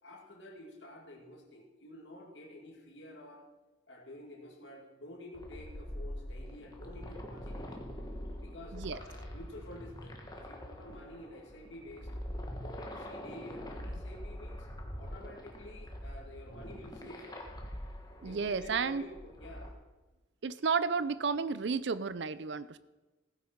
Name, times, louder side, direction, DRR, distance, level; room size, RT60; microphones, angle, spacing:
voice 1, 0.0-3.4 3.9-7.8 8.4-12.1 12.6-14.7 15.0-17.6 18.2-19.8, left 1 dB, 70° left, 1 dB, 2.4 m, -50 dB
sound 1, 5.3-19.7, equal, 20° left, 1.3 m, -44 dB
voice 2, 18.2-19.0 20.4-22.8, right 5 dB, 65° right, 15 dB, 0.5 m, -32 dB
16.0 x 9.6 x 4.5 m, 1.2 s
head